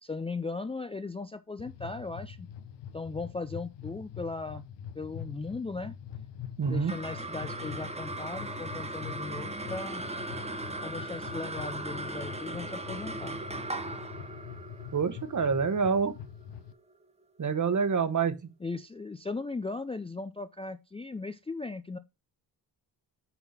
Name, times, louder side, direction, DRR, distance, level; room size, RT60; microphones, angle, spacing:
voice 1, 0.0-2.5 2.9-4.6 4.9-5.9 6.7-10.0 10.8-13.4 18.6-22.0, left 3 dB, 15° left, 0.4 m, -37 dB
sound 1, 1.6-16.7, left 8 dB, 75° left, 0.8 m, -44 dB
sound 2, 6.6-17.2, right 2 dB, 15° right, 1.0 m, -39 dB
voice 2, 6.6-7.0 14.9-16.1 17.4-18.4, right 5 dB, 45° right, 1.1 m, -27 dB
6.0 x 3.6 x 5.6 m
cardioid pair, 70°, 43 cm